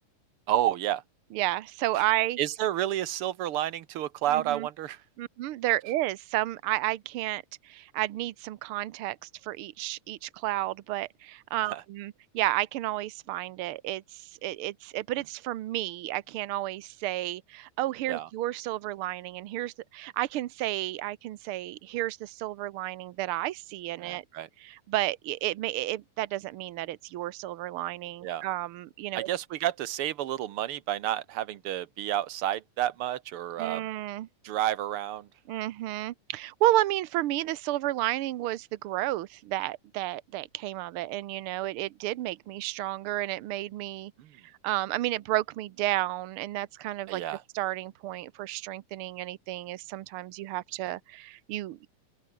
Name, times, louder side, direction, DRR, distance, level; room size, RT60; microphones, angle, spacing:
voice 1, 0.5-1.0 2.4-5.0 11.7-11.8 18.1-18.3 24.0-24.5 28.2-28.4 29.1-33.8 34.4-35.3 44.2-44.3 47.1-47.4, right 12 dB, 65° right, 1.5 m, -30 dB
voice 2, 1.3-2.4 4.3-4.7 5.2-24.2 24.6-29.3 33.6-34.3 35.5-44.1 44.4-47.2 47.5-51.9, right 16 dB, 85° right, 1.2 m, -32 dB
open air
omnidirectional pair, 3.5 m